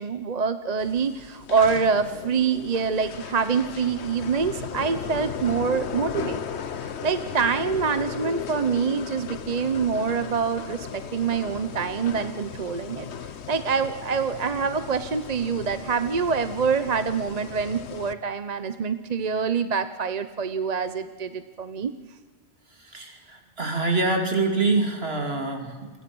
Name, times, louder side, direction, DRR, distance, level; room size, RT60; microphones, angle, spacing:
voice 1, 0.0-6.4 6.8-13.1 13.5-21.9, right 6 dB, 40° right, 11 dB, 0.9 m, -26 dB
sound 1, 0.8-18.1, left 7 dB, 90° left, 1.2 m, -36 dB
voice 2, 22.8-25.9, right 3 dB, 70° right, 4 dB, 3.1 m, -25 dB
29.0 x 23.0 x 6.2 m, 1.5 s
omnidirectional pair, 1.1 m